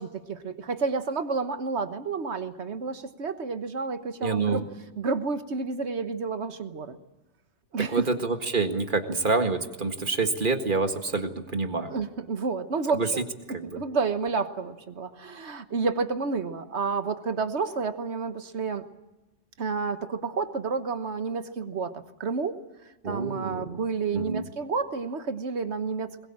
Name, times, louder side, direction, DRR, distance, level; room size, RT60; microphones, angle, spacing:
voice 1, 0.0-4.6 5.0-7.0 7.7-8.1 11.8-13.2 13.7-18.8 19.6-22.6 23.1-26.3, right 4 dB, 70° right, 10 dB, 1.5 m, -30 dB
voice 2, 4.2-4.6 7.9-11.9 12.9-13.1 13.5-13.8 23.0-23.8 24.1-24.4, right 3 dB, 45° right, 7 dB, 1.9 m, -27 dB
21.5 x 21.0 x 8.8 m, 1.1 s
omnidirectional pair, 1.2 m